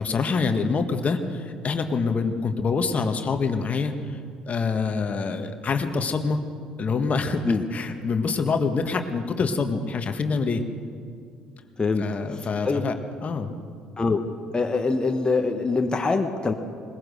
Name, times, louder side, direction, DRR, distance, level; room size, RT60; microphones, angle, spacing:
voice 1, 0.0-4.2 4.5-6.4 6.8-10.6 12.0-13.5, left 4 dB, 40° left, 6 dB, 1.7 m, -26 dB
voice 2, 12.3-12.8 14.0-14.2 14.5-16.5, left 3 dB, 25° left, 4 dB, 1.5 m, -24 dB
21.5 x 20.5 x 6.6 m, 2.3 s
figure-of-eight pair, 55°, 4 cm